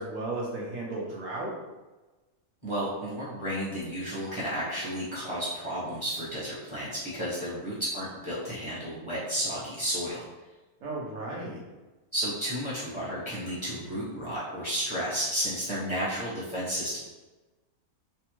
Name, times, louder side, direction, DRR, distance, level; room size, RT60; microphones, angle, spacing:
voice 1, 0.0-1.5 10.8-11.6, right 2 dB, 70° right, -3 dB, 1.0 m, -34 dB
voice 2, 2.6-10.2 12.1-17.0, equal, 25° left, -10 dB, 0.9 m, -32 dB
3.3 x 2.1 x 2.9 m, 1.2 s
omnidirectional pair, 1.5 m